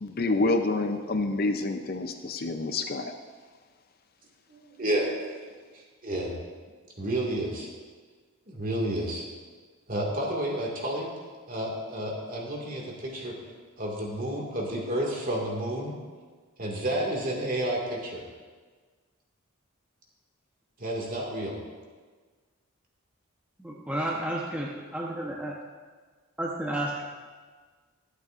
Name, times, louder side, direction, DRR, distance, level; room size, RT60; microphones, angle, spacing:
voice 1, 0.0-3.1, left 2 dB, 45° left, 6 dB, 0.5 m, -27 dB
voice 2, 4.5-5.1 5.5-6.3 7.0-7.7 8.5-9.3 9.9-11.1 11.5-13.4 13.8-15.9 16.6-18.2 20.8-21.6, right 1 dB, 40° right, -1 dB, 2.0 m, -31 dB
voice 3, 23.6-25.6 26.4-27.0, right 1 dB, 5° right, -4 dB, 0.9 m, -32 dB
21.5 x 8.1 x 2.5 m, 1.5 s
head